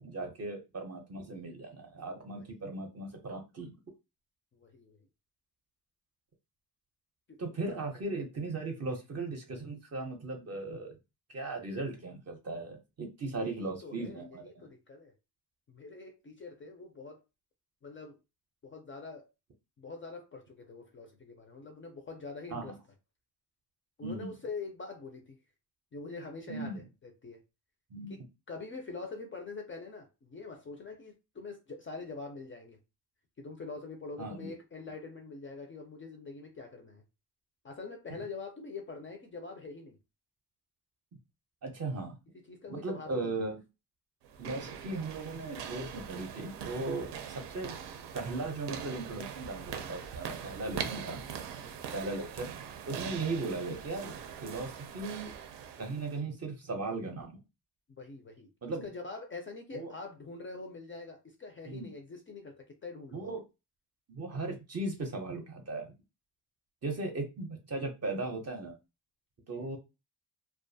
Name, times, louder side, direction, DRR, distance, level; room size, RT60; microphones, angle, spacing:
voice 1, 0.0-3.7 7.4-11.0 11.3-14.7 22.5-22.8 24.0-24.3 26.5-26.8 27.9-28.3 34.2-34.5 41.6-42.2 42.7-43.6 44.4-47.7 48.1-51.2 51.9-52.5 52.9-55.3 55.8-57.4 58.6-58.9 59.7-59.9 61.7-61.9 63.1-63.4 64.1-65.9 66.8-68.8 69.5-69.8, right 3 dB, 40° right, 0.6 m, -37 dB
voice 2, 4.5-5.0 7.3-7.4 7.7-7.8 13.3-15.1 15.7-17.2 17.8-18.2 18.6-19.3 19.8-22.8 24.0-25.4 25.9-27.4 28.1-28.2 28.5-32.8 33.4-37.0 37.6-40.0 42.5-43.4 51.6-51.9 57.9-58.5 58.8-63.3 69.5-69.7, left 4 dB, 30° left, 0.4 m, -44 dB
sound 1, 44.2-56.2, right 8 dB, 85° right, 0.5 m, -42 dB
2.4 x 2.2 x 2.6 m
wide cardioid pair, 150°, 41 cm